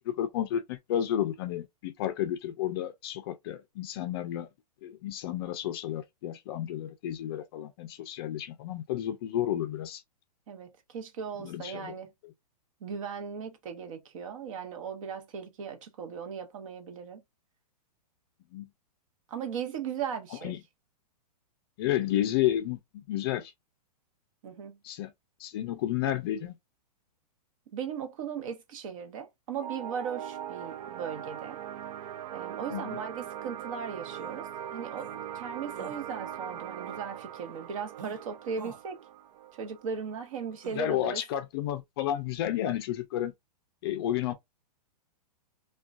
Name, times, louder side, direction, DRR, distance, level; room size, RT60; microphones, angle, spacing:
voice 1, 0.0-4.5 4.8-10.0 11.4-11.9 12.2-12.3 18.5-18.7 20.4-20.6 21.8-23.5 24.8-25.1 25.4-26.6 32.7-33.0 40.8-43.3 43.8-44.3, left 12 dB, 35° left, 0.4 m, -31 dB
voice 2, 10.5-12.1 12.8-17.2 19.3-20.5 24.4-24.8 27.7-31.6 32.3-39.0 39.6-41.2, right 6 dB, 55° right, 0.8 m, -38 dB
sound 1, 29.6-40.6, right 10 dB, 70° right, 0.4 m, -41 dB
sound 2, 34.2-34.3 35.0-35.1 35.7-36.0 38.0-38.2 38.6-38.8 40.6-40.8, right 5 dB, 90° right, 0.9 m, -46 dB
3.6 x 2.2 x 2.4 m
hypercardioid pair, 150°, 21 cm